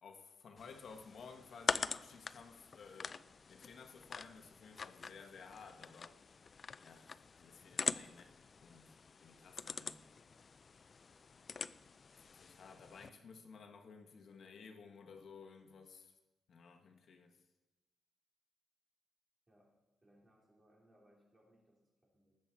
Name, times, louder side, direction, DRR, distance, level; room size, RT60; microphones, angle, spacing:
voice 1, 0.0-3.2 3.5-6.2 6.8-10.0 12.1-16.1 16.5-17.4, left 5 dB, 60° left, 5 dB, 1.3 m, -56 dB
sound 1, 0.6-13.1, left 5 dB, 40° left, 0.4 m, -44 dB
voice 2, 9.8-10.1 11.5-11.7 19.5-22.4, equal, 20° right, -3 dB, 4.6 m, -70 dB
20.0 x 7.6 x 4.5 m, 1.0 s
cardioid pair, 115°, 0 cm